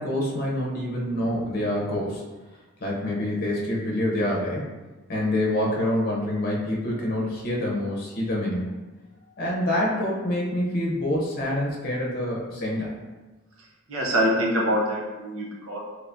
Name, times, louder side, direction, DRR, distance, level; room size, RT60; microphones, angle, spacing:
voice 1, 0.0-2.2 2.8-4.6 5.1-8.7 9.4-12.9, left 1 dB, 45° left, -4 dB, 0.7 m, -26 dB
voice 2, 13.9-15.8, equal, 75° right, -2 dB, 0.8 m, -24 dB
3.0 x 2.6 x 3.4 m, 1.2 s
head